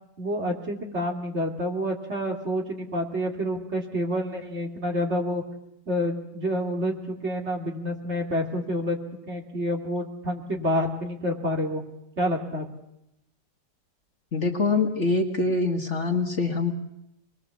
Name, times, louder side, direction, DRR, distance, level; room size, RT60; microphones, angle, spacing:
voice 1, 0.2-5.4 5.9-9.0 9.3-11.8 12.2-12.7, equal, 40° right, 2 dB, 3.0 m, -28 dB
voice 2, 14.3-16.7, left 3 dB, 45° left, 4 dB, 2.0 m, -24 dB
26.5 x 21.0 x 7.3 m, 0.82 s
omnidirectional pair, 1.9 m